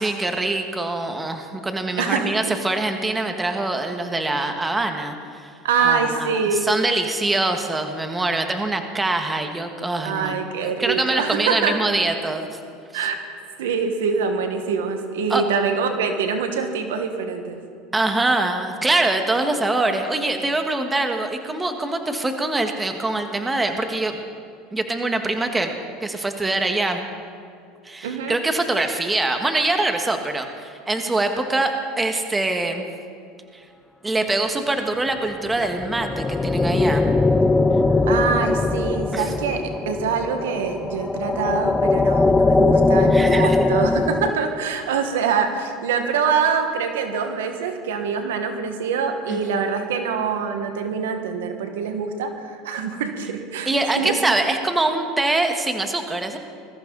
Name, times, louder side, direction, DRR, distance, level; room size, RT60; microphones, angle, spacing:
voice 1, 0.0-10.3 10.6-12.5 15.3-15.4 17.9-24.2 24.7-27.1 27.8-32.9 33.5-33.6 34.0-37.1 39.1-39.3 43.1-43.7 49.3-49.6 53.6-56.4, right 2 dB, 15° right, 5 dB, 1.6 m, -24 dB
voice 2, 2.0-2.3 5.6-6.7 10.0-11.8 12.9-13.2 13.6-17.6 28.0-28.4 38.1-53.7 54.0-54.1, right 6 dB, 85° right, 6 dB, 1.6 m, -24 dB
sound 1, 35.4-44.3, left 3 dB, 15° left, 0.7 m, -20 dB
21.0 x 14.0 x 4.0 m, 2.3 s
supercardioid pair, 105°, 0 cm